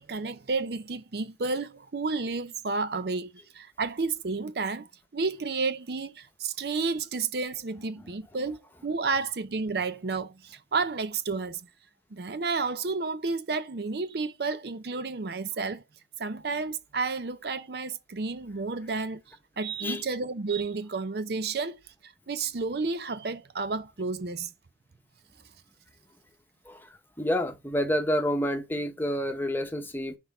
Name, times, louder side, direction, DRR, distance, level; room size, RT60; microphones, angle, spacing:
voice 1, 0.0-4.9 5.1-11.6 12.1-15.8 16.2-19.2 19.6-24.5, right 4 dB, 60° right, 0.6 m, -31 dB
voice 2, 27.2-30.2, equal, 10° left, 1.0 m, -28 dB
6.1 x 4.0 x 4.2 m
head